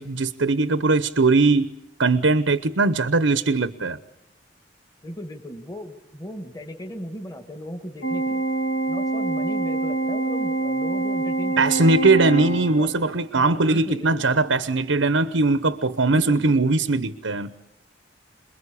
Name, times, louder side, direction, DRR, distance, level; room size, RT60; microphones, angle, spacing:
voice 1, 0.0-1.7 2.0-4.0 11.6-17.5, right 3 dB, 85° right, 0.9 m, -20 dB
voice 2, 5.0-8.4 8.9-12.0 12.8-12.9 13.3-14.3 16.1-16.6, equal, 20° left, 1.8 m, -37 dB
Organ, 8.0-13.1, right 2 dB, 60° left, 1.6 m, -25 dB
27.5 x 21.5 x 8.5 m
head